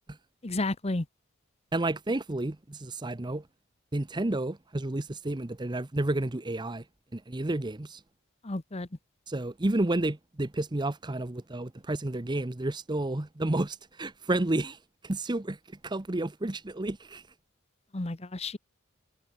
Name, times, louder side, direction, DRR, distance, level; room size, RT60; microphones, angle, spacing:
voice 1, 0.4-1.0 8.4-8.9 17.9-18.6, left 2 dB, 30° left, 1.0 m, -31 dB
voice 2, 1.7-3.4 3.9-6.8 7.1-8.0 9.3-14.8 15.0-15.6 15.8-17.2, right 2 dB, 20° right, 0.8 m, -31 dB
head